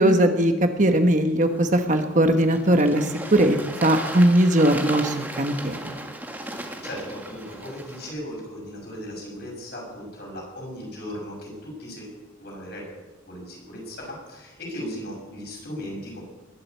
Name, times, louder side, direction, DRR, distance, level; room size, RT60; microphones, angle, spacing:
voice 1, 0.0-6.0, right 1 dB, 40° right, 6 dB, 1.2 m, -20 dB
Bird / Water, 1.4-8.1, right 1 dB, 10° right, 1.6 m, -36 dB
voice 2, 6.3-12.9 13.3-16.2, equal, 55° left, -1 dB, 6.4 m, -37 dB
20.5 x 7.8 x 8.3 m, 1.2 s
head